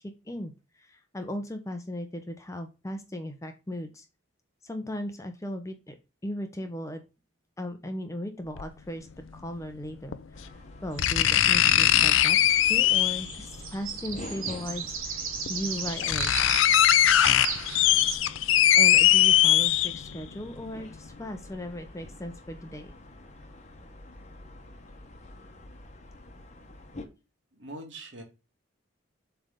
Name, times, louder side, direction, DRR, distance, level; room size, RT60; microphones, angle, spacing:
voice 1, 0.9-4.0 4.6-5.9 6.2-7.0 7.6-9.1 9.3-10.2 10.8-12.4 12.6-16.3 18.8-22.9, left 1 dB, 15° left, 7 dB, 0.7 m, -37 dB
sound 1, 8.6-8.7 10.1-10.2 11.0-13.4 14.7-14.8 15.5-15.6 15.8-20.2 20.7-20.8, left 11 dB, 70° left, 0.4 m, -21 dB
sound 2, 10.3-27.1, left 1 dB, 35° left, 1.0 m, -47 dB
sound 3, 10.9-18.2, right 6 dB, 80° right, 1.5 m, -37 dB
voice 2, 27.5-28.2, right 1 dB, 60° right, 2 dB, 2.1 m, -42 dB
7.7 x 3.4 x 3.7 m, 0.29 s
head